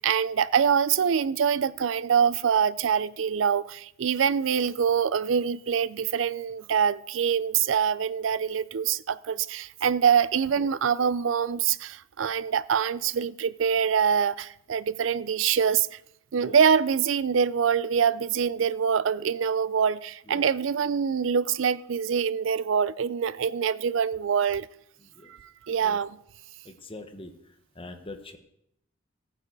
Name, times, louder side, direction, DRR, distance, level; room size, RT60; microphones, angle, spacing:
voice 1, 0.0-16.0 16.3-24.7 25.3-26.2, right 7 dB, 70° right, 0.4 m, -25 dB
voice 2, 26.6-27.3 27.8-28.4, left 2 dB, 30° left, 1.2 m, -42 dB
14.5 x 9.2 x 4.7 m
head